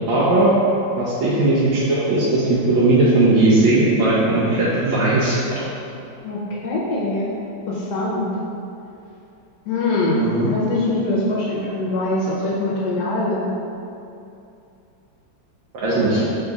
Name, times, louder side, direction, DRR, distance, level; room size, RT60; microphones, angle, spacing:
voice 1, 0.1-0.5 1.0-5.4 10.1-10.5 15.8-16.2, right 2 dB, 80° right, -8 dB, 1.4 m, -17 dB
voice 2, 6.2-7.4 7.7-8.3 9.7-13.5, left 2 dB, 70° left, -5 dB, 1.1 m, -23 dB
5.4 x 3.7 x 2.3 m, 2.7 s
omnidirectional pair, 2.1 m